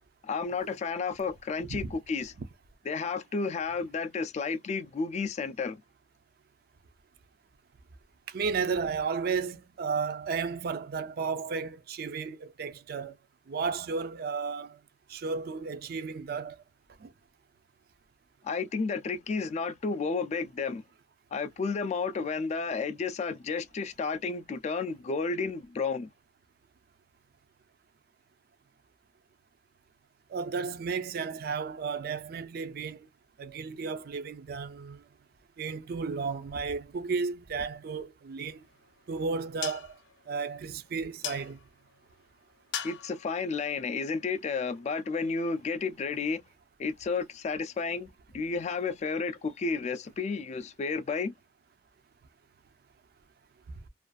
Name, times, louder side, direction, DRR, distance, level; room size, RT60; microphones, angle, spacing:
voice 1, 0.2-2.3 2.9-5.8 18.4-20.8 21.3-26.1 42.8-46.4 46.8-48.1 48.3-51.3, left 4 dB, 40° left, 0.3 m, -32 dB
voice 2, 8.3-13.1 13.5-14.8 15.1-16.6 17.0-17.1 30.3-33.1 33.4-35.0 35.6-38.6 39.1-39.9 40.3-41.6, right 5 dB, 60° right, 0.4 m, -33 dB
sound 1, 38.4-44.9, left 9 dB, 85° left, 0.5 m, -43 dB
2.4 x 2.3 x 2.2 m
head